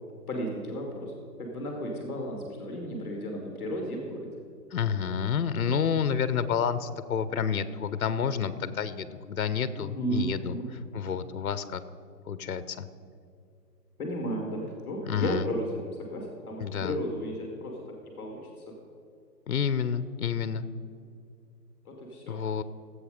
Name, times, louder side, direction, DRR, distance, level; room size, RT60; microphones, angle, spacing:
voice 1, 0.3-1.1 1.4-4.3 9.8-10.6 14.0-15.6 16.0-17.8 18.2-18.7 21.8-22.4, equal, 10° left, 0 dB, 1.4 m, -34 dB
voice 2, 4.7-10.5 10.9-11.8 12.3-12.9 15.1-15.5 16.6-17.0 19.5-20.7 22.3-22.6, left 7 dB, 60° left, 13 dB, 0.8 m, -29 dB
15.5 x 8.0 x 5.0 m, 2.4 s
hypercardioid pair, 170°, 49 cm